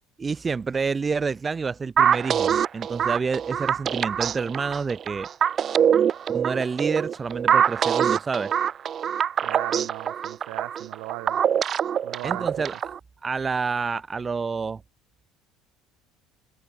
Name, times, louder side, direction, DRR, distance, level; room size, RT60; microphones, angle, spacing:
voice 1, 0.2-5.3 6.3-8.5 12.2-12.9 13.2-14.8, right 5 dB, 25° right, 2.3 m, -28 dB
sound 1, 2.0-13.0, right 8 dB, 45° right, 0.5 m, -24 dB
voice 2, 9.4-11.4 12.0-12.6, right 32 dB, 75° right, 4.6 m, -37 dB
supercardioid pair, 80°, 0 cm